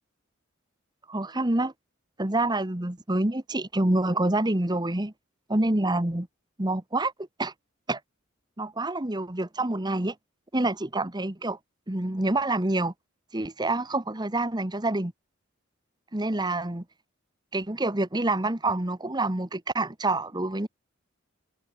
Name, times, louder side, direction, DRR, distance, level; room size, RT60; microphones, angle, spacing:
voice 1, 1.1-1.7 2.2-5.1 5.5-6.3 6.6-7.1 7.4-7.5 7.9-8.0 8.6-10.1 10.5-11.6 11.9-12.9 13.3-15.1 16.1-16.8 17.5-20.7, right 2 dB, 20° right, 1.3 m, -27 dB
head